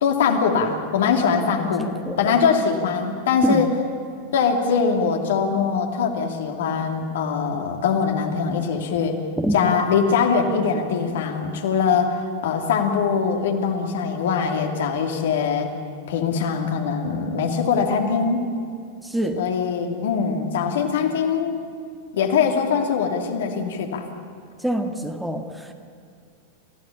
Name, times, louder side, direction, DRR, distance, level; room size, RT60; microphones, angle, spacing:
voice 1, 0.0-1.9 2.2-3.7 4.3-9.2 9.5-15.7 16.1-18.4 19.4-21.6 22.1-24.1, left 6 dB, 60° left, 3 dB, 2.8 m, -22 dB
voice 2, 1.6-2.4 3.4-3.6 9.4-9.6 19.0-19.4 24.6-25.7, right 1 dB, 5° right, 5 dB, 1.7 m, -26 dB
28.0 x 16.0 x 8.8 m, 2.4 s
figure-of-eight pair, 90°, 0 cm